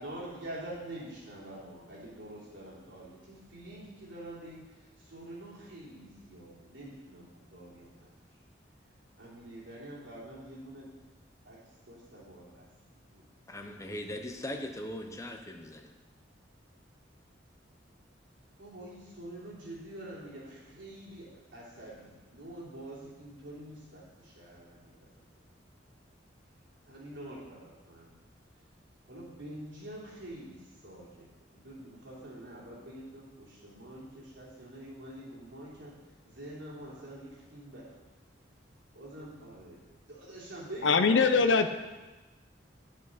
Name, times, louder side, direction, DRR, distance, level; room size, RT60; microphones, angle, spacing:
voice 1, 0.0-8.1 9.2-10.9 11.4-11.6 11.9-13.2 13.6-13.9 14.3-14.6 18.6-25.3 26.9-28.2 29.1-35.9 36.2-38.0 38.9-39.8 40.1-41.6, right 1 dB, 85° right, -7 dB, 3.1 m, -46 dB
voice 2, 13.5-15.9, left 1 dB, 15° left, 4 dB, 0.8 m, -39 dB
voice 3, 40.8-41.7, left 4 dB, 85° left, 9 dB, 0.6 m, -22 dB
9.8 x 7.3 x 4.1 m, 1.2 s
head